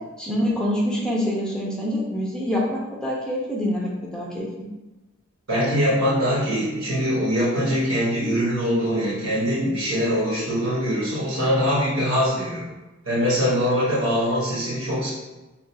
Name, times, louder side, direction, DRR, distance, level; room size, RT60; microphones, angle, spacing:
voice 1, 0.2-4.7, equal, 5° left, -3 dB, 0.5 m, -26 dB
voice 2, 5.5-12.7 13.0-15.1, equal, 80° right, -5 dB, 1.2 m, -23 dB
2.9 x 2.4 x 4.1 m, 1.1 s
head